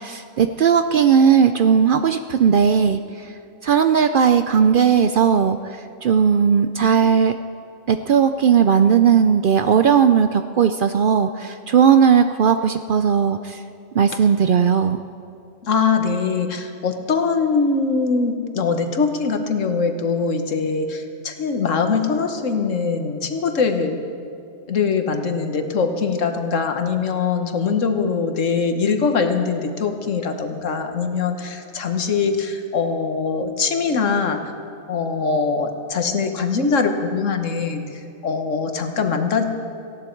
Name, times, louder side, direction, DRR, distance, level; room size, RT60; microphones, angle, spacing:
voice 1, 0.0-3.0 3.6-5.6 6.0-7.3 7.9-13.6 14.0-15.0, right 7 dB, 60° right, 9 dB, 0.6 m, -17 dB
voice 2, 15.7-24.0 24.7-34.4 34.9-37.8 38.2-39.6, left 5 dB, 80° left, 6 dB, 1.5 m, -22 dB
18.5 x 15.5 x 4.5 m, 2.6 s
omnidirectional pair, 1.3 m